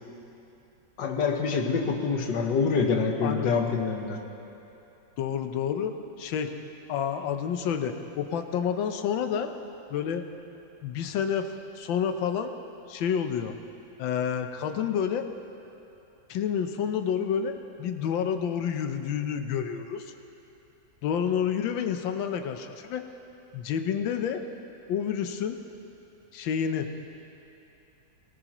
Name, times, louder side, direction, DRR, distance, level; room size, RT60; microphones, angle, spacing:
voice 1, 1.0-4.2, left 5 dB, 70° left, 3 dB, 1.8 m, -26 dB
voice 2, 3.2-3.7 5.2-6.5 6.9-9.5 9.9-10.2 10.8-12.5 12.9-13.6 14.0-15.3 16.3-20.1 21.0-23.1 23.5-24.4 24.9-25.6 26.3-26.9, left 8 dB, 90° left, 7 dB, 1.5 m, -29 dB
18.5 x 18.0 x 3.0 m, 2.9 s
omnidirectional pair, 2.0 m